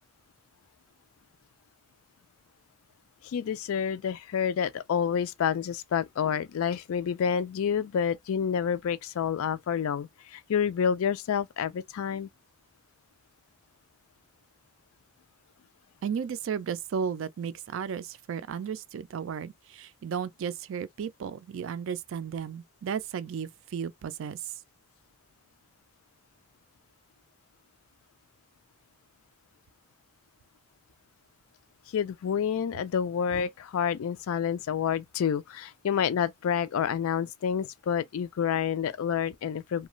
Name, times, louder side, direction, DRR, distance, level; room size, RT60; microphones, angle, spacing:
voice 1, 3.2-12.3 31.9-39.9, left 7 dB, 75° left, 0.3 m, -28 dB
voice 2, 16.0-24.5, right 7 dB, 60° right, 0.3 m, -34 dB
2.4 x 2.3 x 3.0 m
head